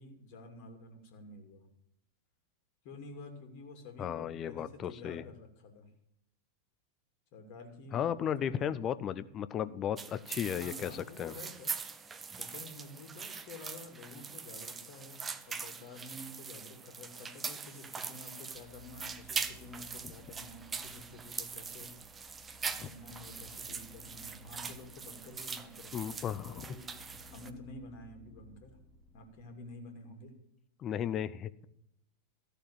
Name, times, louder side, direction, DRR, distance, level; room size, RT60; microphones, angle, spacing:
voice 1, 0.0-1.7 2.8-5.9 7.3-8.8 10.6-11.7 12.4-21.9 22.7-25.9 26.4-28.7 29.1-30.3, left 2 dB, 45° left, 5 dB, 2.7 m, -50 dB
voice 2, 4.0-5.2 7.9-11.3 22.8-22.9 25.9-26.7 30.8-31.6, left 9 dB, 30° left, 16 dB, 0.7 m, -35 dB
sound 1, 10.0-27.5, right 5 dB, 20° right, 0.9 m, -42 dB
sound 2, 18.5-29.4, left 2 dB, 10° left, 3.5 m, -57 dB
14.0 x 6.7 x 7.3 m, 0.78 s
figure-of-eight pair, 90°, 0 cm